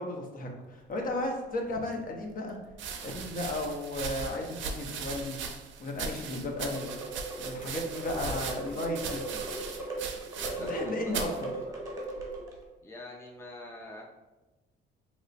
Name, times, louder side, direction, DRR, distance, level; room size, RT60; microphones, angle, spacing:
voice 1, 0.0-2.6 3.0-5.4 5.8-6.9 7.3-9.2 10.6-11.5, left 1 dB, 45° left, 2 dB, 0.7 m, -34 dB
sound 1, 1.7-1.8 2.7-10.8 11.1-11.4 12.2-12.6, right 5 dB, 70° right, 0.5 m, -39 dB
sound 2, 6.6-12.6, right 2 dB, 15° right, 1.0 m, -38 dB
voice 2, 7.9-9.7 10.4-11.8 12.8-14.0, left 2 dB, 15° left, 0 dB, 0.4 m, -46 dB
3.0 x 2.1 x 4.0 m, 1.1 s
cardioid pair, 90°, 20 cm